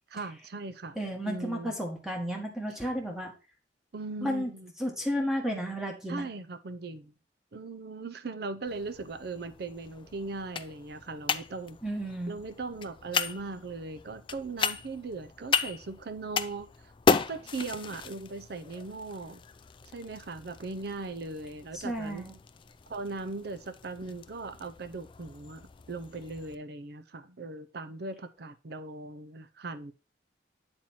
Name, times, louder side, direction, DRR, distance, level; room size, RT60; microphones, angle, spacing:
voice 1, 0.1-1.0 1.3-1.7 3.9-4.7 6.1-7.1 7.5-11.8 12.3-16.7 17.1-19.4 19.9-22.3 22.9-29.9, right 3 dB, 60° right, 0.6 m, -39 dB
voice 2, 0.9-3.3 4.2-4.5 4.8-6.2 11.8-12.3 21.7-22.3, equal, 5° right, 1.5 m, -32 dB
sound 1, 8.7-26.5, left 5 dB, 25° left, 0.3 m, -36 dB
7.7 x 4.4 x 4.3 m
head